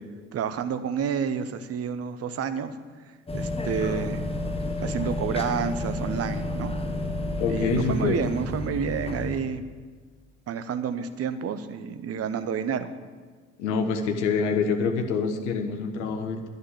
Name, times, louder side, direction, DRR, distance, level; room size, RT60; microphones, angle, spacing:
voice 1, 0.3-2.7 3.3-4.3 4.8-6.7 7.4-9.7 10.5-12.9, right 7 dB, 40° right, 11 dB, 1.0 m, -29 dB
sound 1, 3.3-9.4, left 2 dB, 15° left, 1.4 m, -30 dB
voice 2, 7.4-8.1 13.6-16.5, left 5 dB, 70° left, 5 dB, 1.3 m, -26 dB
11.5 x 6.6 x 9.0 m, 1.5 s
figure-of-eight pair, 50°, 36 cm